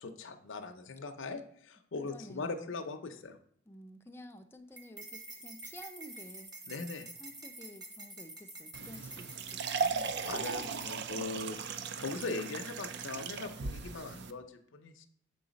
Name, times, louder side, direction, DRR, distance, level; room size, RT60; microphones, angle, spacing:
voice 1, 0.0-3.4 6.7-7.1 10.3-15.1, left 3 dB, 65° left, 5 dB, 0.6 m, -40 dB
voice 2, 2.0-2.9 3.7-6.6 7.2-10.2, equal, 10° left, 6 dB, 0.4 m, -51 dB
sound 1, 4.8-11.2, right 2 dB, 20° right, 1.0 m, -48 dB
sound 2, 8.7-14.3, right 5 dB, 55° right, 0.4 m, -37 dB
7.6 x 3.9 x 5.1 m, 0.65 s
head